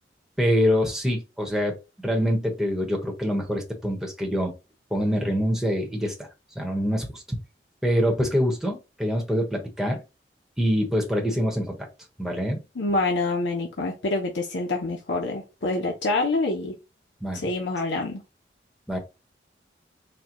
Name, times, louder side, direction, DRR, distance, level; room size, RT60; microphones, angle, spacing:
voice 1, 0.4-1.8 2.0-4.5 4.9-6.3 6.5-7.4 7.8-10.0 10.6-11.9 12.2-12.6 17.2-17.4 18.9-19.0, equal, ahead, 1.1 m, -25 dB
voice 2, 12.8-16.7 17.3-18.2, left 2 dB, 85° left, 0.8 m, -26 dB
4.5 x 2.3 x 3.8 m
head